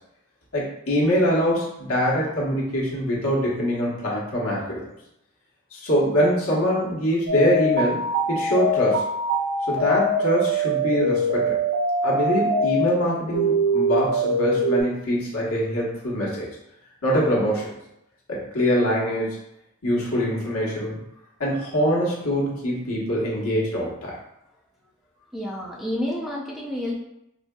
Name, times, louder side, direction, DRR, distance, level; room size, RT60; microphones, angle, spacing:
voice 1, 0.5-4.8 5.7-9.0 9.7-11.6 12.0-16.5 17.0-17.7 18.3-19.4 19.8-21.0 21.4-24.1, equal, 80° left, -5 dB, 1.1 m, -23 dB
sound 1, 7.3-12.9 13.3-14.8, right 1 dB, 55° right, 0.7 m, -23 dB
voice 2, 25.3-26.9, left 1 dB, ahead, -4 dB, 0.5 m, -29 dB
4.2 x 2.7 x 2.2 m, 0.84 s
head